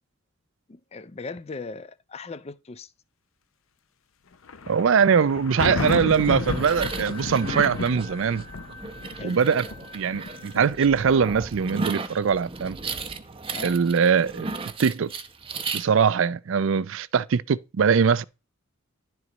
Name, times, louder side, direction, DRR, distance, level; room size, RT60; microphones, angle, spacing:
voice 1, 0.7-2.9 9.1-9.4 13.5-13.8, left 4 dB, 30° left, 0.4 m, -38 dB
sound 1, 4.5-10.7, left 4 dB, 70° left, 0.7 m, -32 dB
voice 2, 4.7-8.4 9.2-9.6 9.9-12.8 13.6-14.5 14.8-15.1 15.7-18.2, right 6 dB, 65° right, 0.4 m, -22 dB
sound 2, 5.7-15.8, right 4 dB, 25° right, 0.7 m, -35 dB
sound 3, 5.9-12.4, left 2 dB, ahead, 1.0 m, -48 dB
11.0 x 4.6 x 4.0 m
head